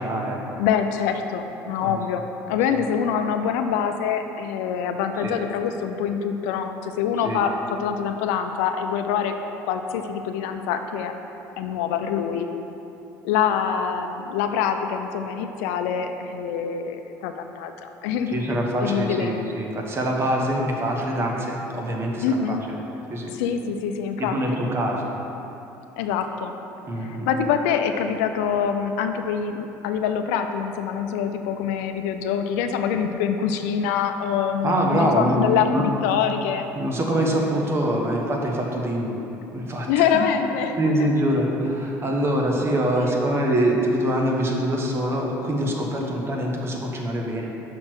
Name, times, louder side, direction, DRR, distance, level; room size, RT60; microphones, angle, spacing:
voice 1, 0.0-0.4 1.8-1.9 5.2-5.3 7.2-7.4 18.3-22.8 23.1-23.3 24.2-25.1 26.9-27.3 34.6-35.4 35.7-35.8 36.8-39.2 39.5-39.9 40.8-47.5, right 1 dB, 35° right, 0 dB, 1.2 m, -24 dB
voice 2, 0.6-9.4 9.6-11.1 11.6-12.5 13.2-18.4 18.8-19.4 22.2-22.7 23.3-24.6 26.0-26.5 27.0-36.7 39.9-40.9 42.4-42.5 43.0-43.4 46.0-46.2, left 7 dB, 90° left, 7 dB, 0.5 m, -25 dB
6.2 x 4.4 x 6.1 m, 2.9 s
supercardioid pair, 95°, 8 cm